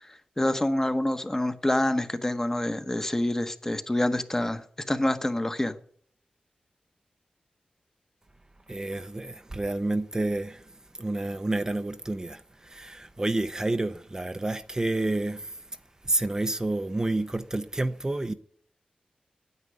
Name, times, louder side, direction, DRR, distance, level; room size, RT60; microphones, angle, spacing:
voice 1, 0.4-4.6 4.9-5.7, left 1 dB, 20° left, 1.0 m, -26 dB
voice 2, 8.7-15.8 16.0-18.3, right 2 dB, 25° right, 0.6 m, -29 dB
9.6 x 9.0 x 9.5 m
wide cardioid pair, 80°, 3 cm